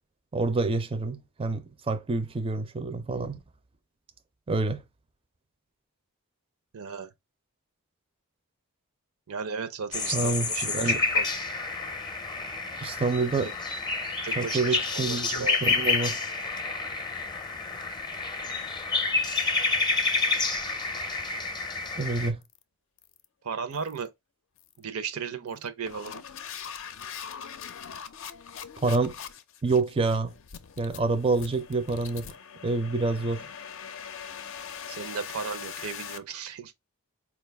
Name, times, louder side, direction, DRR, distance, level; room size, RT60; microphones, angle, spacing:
voice 1, 0.3-3.4 4.5-4.8 10.1-11.0 12.8-13.5 14.4-16.2 22.0-22.4 28.8-29.2 29.6-30.3 30.8-32.3 32.6-33.5, right 3 dB, 25° right, 0.4 m, -27 dB
voice 2, 6.7-7.1 9.3-11.3 13.4-13.5 14.2-15.7 23.4-24.1 24.8-26.2 34.9-36.7, right 6 dB, 85° right, 0.6 m, -35 dB
sound 1, 9.9-22.3, left 3 dB, 20° left, 0.6 m, -29 dB
sound 2, 22.4-22.6 23.0-23.2 23.7-24.1 24.6-24.8 25.5-36.2, left 7 dB, 65° left, 0.5 m, -42 dB
4.6 x 2.3 x 3.3 m
head